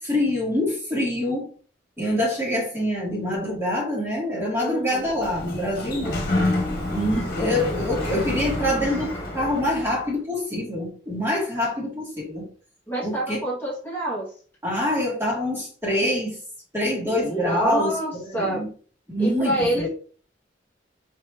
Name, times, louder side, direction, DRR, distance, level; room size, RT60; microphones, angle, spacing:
voice 1, 0.0-1.5 2.0-6.2 6.9-12.5 13.0-13.4 14.6-16.4 16.7-18.7 19.1-19.9, left 1 dB, 15° right, -3 dB, 1.5 m, -25 dB
voice 2, 4.6-5.0 12.9-14.3 17.0-18.6 19.2-19.9, right 1 dB, 10° left, -6 dB, 1.3 m, -27 dB
Sliding door, 4.9-10.1, left 1 dB, 50° left, 1.3 m, -28 dB
4.6 x 2.8 x 3.3 m, 0.42 s
head